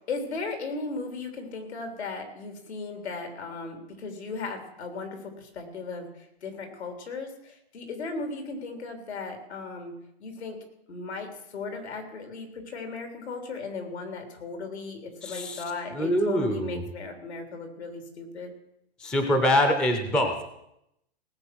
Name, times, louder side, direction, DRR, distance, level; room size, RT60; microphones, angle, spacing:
voice 1, 0.1-9.9 10.2-10.6 10.9-18.5, left 3 dB, 90° left, 5 dB, 3.7 m, -36 dB
voice 2, 15.2-15.6 15.9-16.8 19.0-20.3, equal, 5° left, 6 dB, 0.4 m, -24 dB
18.5 x 8.1 x 6.1 m, 0.81 s
hypercardioid pair, 160°, 32 cm